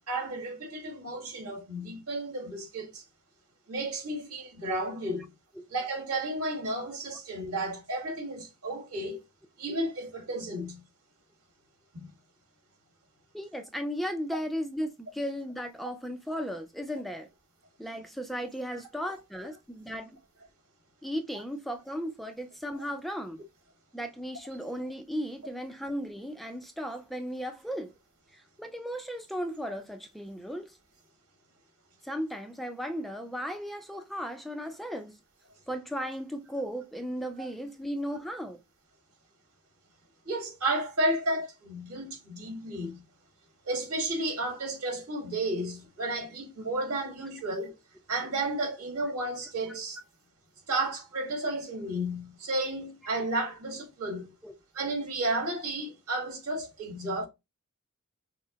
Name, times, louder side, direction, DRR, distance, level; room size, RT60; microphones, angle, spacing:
voice 1, 0.1-3.0 3.7-5.3 5.7-9.2 9.6-10.8 11.9-12.1 18.7-18.8 37.4-37.5 40.2-43.0 43.7-47.8 48.1-50.0 50.7-54.3 54.7-57.3, right 1 dB, 75° right, 2.2 m, -32 dB
voice 2, 13.3-17.3 17.8-20.2 21.0-23.4 23.9-27.9 28.3-30.8 32.0-35.2 35.7-38.6 54.4-54.5, equal, ahead, 0.5 m, -36 dB
6.1 x 2.1 x 3.9 m
head